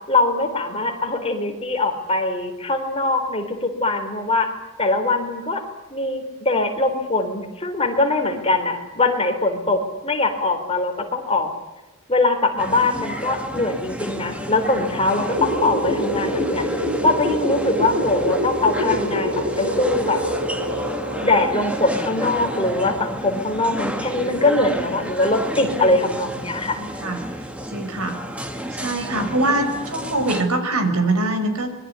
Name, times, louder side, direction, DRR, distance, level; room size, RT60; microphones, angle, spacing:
voice 1, 0.1-4.5 4.8-5.6 5.9-11.5 12.1-16.6 17.0-20.2 21.2-26.8, left 2 dB, 25° left, 5 dB, 3.9 m, -22 dB
sound 1, 12.6-30.4, equal, 5° right, 2.0 m, -31 dB
sound 2, 15.3-21.5, equal, 30° right, 5.3 m, -25 dB
voice 2, 26.8-27.3 27.7-28.2 28.7-31.7, right 2 dB, 85° right, 8 dB, 5.2 m, -23 dB
25.5 x 22.0 x 9.7 m, 1.0 s
head